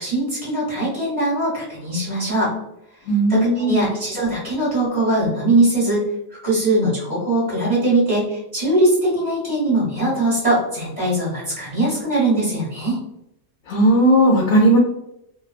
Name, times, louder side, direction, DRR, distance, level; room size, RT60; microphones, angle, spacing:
voice 1, 0.0-2.5 3.3-6.0 6.4-13.0, right 1 dB, 25° right, -10 dB, 1.1 m, -21 dB
voice 2, 3.1-3.9 13.7-14.8, right 1 dB, 85° left, -2 dB, 1.0 m, -16 dB
2.6 x 2.2 x 2.3 m, 0.82 s
omnidirectional pair, 1.4 m